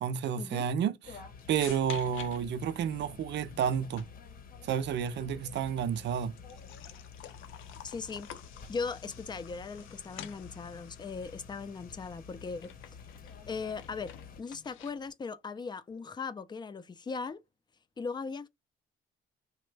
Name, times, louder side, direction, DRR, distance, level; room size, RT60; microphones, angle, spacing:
voice 1, 0.0-1.2 1.5-4.1 4.6-6.4, right 8 dB, 65° right, 0.5 m, -31 dB
sound 1, 1.0-14.4, left 5 dB, 45° left, 0.8 m, -50 dB
sound 2, 1.1-15.1, left 10 dB, 85° left, 0.6 m, -51 dB
voice 2, 7.8-8.3 8.7-12.7 13.5-17.4 18.0-18.5, left 4 dB, 20° left, 0.4 m, -38 dB
2.9 x 2.2 x 3.2 m
cardioid pair, 90°, 20 cm